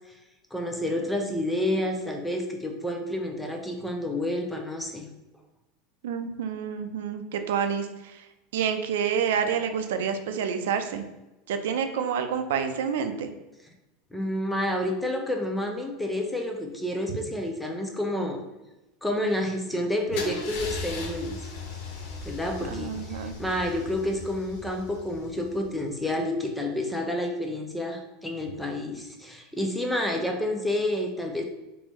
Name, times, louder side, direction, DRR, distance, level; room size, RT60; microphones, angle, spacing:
voice 1, 0.5-5.1 14.1-18.4 19.0-21.5 22.3-31.4, left 1 dB, 5° left, 2 dB, 0.4 m, -29 dB
voice 2, 6.0-8.3 8.5-11.0 11.5-13.3 22.6-23.4, right 7 dB, 85° right, 7 dB, 0.4 m, -28 dB
Car / Engine starting / Idling, 20.1-26.0, left 3 dB, 60° left, 0.7 m, -38 dB
3.1 x 2.6 x 3.4 m, 0.99 s
supercardioid pair, 155°, 0 cm